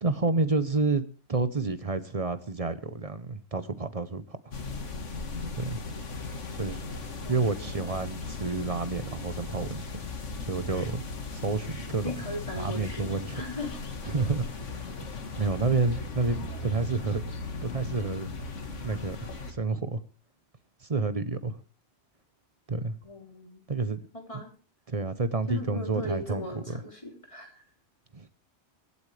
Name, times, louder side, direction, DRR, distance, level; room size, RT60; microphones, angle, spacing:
voice 1, 0.0-1.0 1.3-4.5 5.5-5.8 6.6-6.8 7.3-9.9 10.4-11.0 11.3-12.2 12.6-13.4 14.0-14.8 15.4-17.2 17.6-18.3 18.8-19.2 19.5-20.0 20.8-21.6 22.7-22.9 23.7-24.0 24.3-24.4 24.9-26.8 28.1-28.3, right 3 dB, 35° right, 12 dB, 0.8 m, -29 dB
sound 1, 4.5-19.5, left 3 dB, 85° left, 2.0 m, -37 dB
voice 2, 7.2-7.8 12.0-13.7 23.0-23.6 24.1-24.5 25.5-27.6, left 1 dB, 25° left, 1 dB, 3.4 m, -38 dB
24.5 x 8.4 x 3.3 m, 0.36 s
omnidirectional pair, 1.2 m